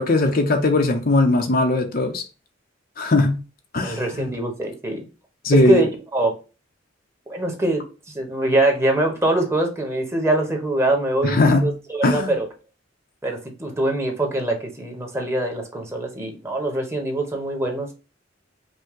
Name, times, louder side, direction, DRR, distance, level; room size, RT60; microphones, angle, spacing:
voice 1, 0.0-2.2 3.0-3.4 3.7-4.3 5.4-5.8 11.2-11.7 12.0-12.3, left 2 dB, 50° left, 0.8 m, -19 dB
voice 2, 3.8-5.1 5.6-6.3 7.3-7.8 8.1-12.5 13.2-17.9, right 1 dB, 15° right, 1.2 m, -23 dB
5.3 x 2.2 x 3.6 m
head